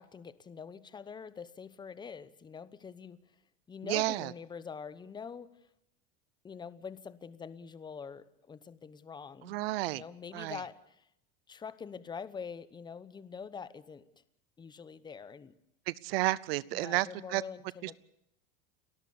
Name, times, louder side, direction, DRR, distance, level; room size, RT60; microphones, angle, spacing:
voice 1, 0.0-3.2 3.7-5.5 6.4-9.6 9.9-11.1 11.5-14.0 14.6-15.5 16.7-18.0, left 6 dB, 15° left, 16 dB, 0.9 m, -45 dB
voice 2, 3.8-4.3 9.4-10.0 10.3-10.6 15.9-17.4 17.8-18.0, right 19 dB, 85° right, 21 dB, 0.7 m, -31 dB
30.0 x 13.5 x 7.1 m, 0.76 s
supercardioid pair, 140°, 29 cm